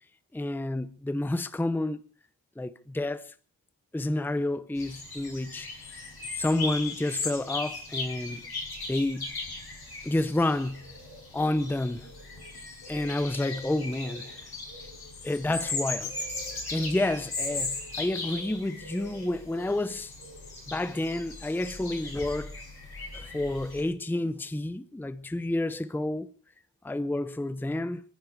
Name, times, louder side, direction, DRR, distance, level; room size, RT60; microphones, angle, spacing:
voice 1, 0.3-2.0 2.6-3.3 3.9-5.7 6.4-8.4 8.9-9.3 10.0-10.9 11.3-12.1 12.9-14.5 15.2-16.2 16.7-20.1 20.7-22.6 23.1-26.3 26.8-28.0, left 1 dB, 5° left, 0.7 m, -30 dB
sound 1, 4.8-23.8, left 3 dB, 55° left, 6.3 m, -38 dB
29.0 x 9.9 x 4.6 m
wide cardioid pair, 115°, 46 cm